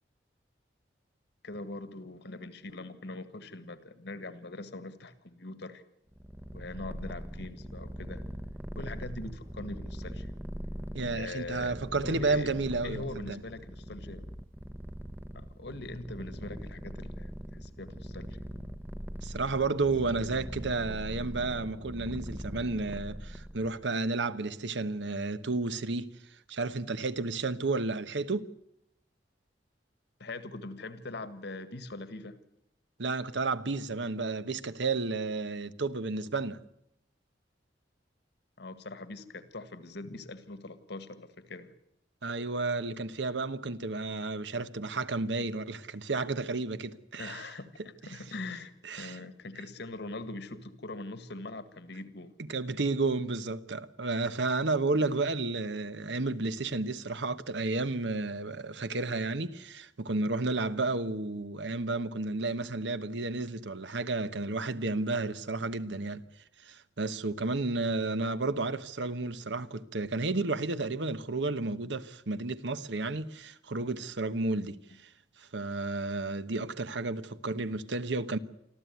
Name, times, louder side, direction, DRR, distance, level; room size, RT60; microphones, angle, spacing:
voice 1, 1.4-5.8 6.5-8.2 8.8-10.3 11.2-11.8 12.0-12.5 12.8-14.3 15.4-18.3 30.2-32.4 38.6-41.8 47.2-52.3, left 2 dB, 70° left, 1.8 m, -42 dB
Purr, 6.1-23.8, equal, 10° right, 0.8 m, -41 dB
voice 2, 10.9-13.4 19.2-26.1 26.5-28.5 33.0-36.6 42.2-47.4 48.1-48.2 48.8-49.2 52.5-66.3 66.6-75.1 75.4-78.4, right 3 dB, 75° right, 1.1 m, -32 dB
25.5 x 14.5 x 9.4 m
head